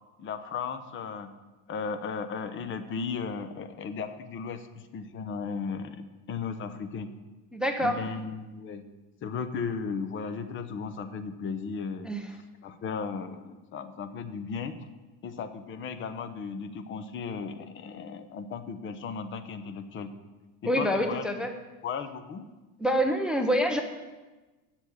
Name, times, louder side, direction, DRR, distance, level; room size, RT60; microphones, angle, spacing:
voice 1, 0.2-1.3 1.7-7.1 7.8-8.9 9.2-12.1 12.6-14.8 15.2-20.1 20.6-21.3 21.8-22.5, left 5 dB, 25° left, 10 dB, 0.8 m, -35 dB
voice 2, 7.5-8.0 12.0-12.3 20.7-21.5 22.8-23.8, equal, ahead, 5 dB, 0.6 m, -26 dB
8.1 x 7.2 x 8.6 m, 1.2 s
supercardioid pair, 135°, 44 cm